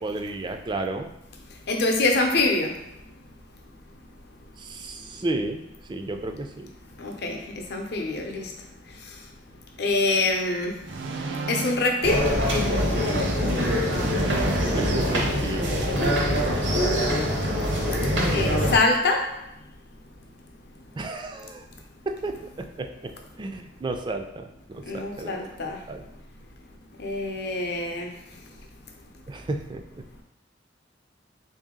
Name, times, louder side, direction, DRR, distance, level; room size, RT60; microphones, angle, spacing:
voice 1, 0.0-1.1 4.6-5.6 5.9-6.7 14.8-16.6 21.0-21.6 22.1-22.4 23.0-23.1 23.4-26.0 29.3-29.8, right 2 dB, 25° right, 5 dB, 0.3 m, -32 dB
voice 2, 1.7-2.7 7.0-7.4 7.7-8.5 9.8-10.8 11.5-12.3 18.3-19.3 24.9-25.8 27.0-28.1, left 2 dB, 65° left, 2 dB, 0.6 m, -24 dB
sound 1, 10.8-13.0 13.8-16.0, right 3 dB, 90° right, 0.4 m, -35 dB
sound 2, 12.0-18.8, equal, 70° right, 0.8 m, -24 dB
3.4 x 2.7 x 3.7 m, 0.82 s
head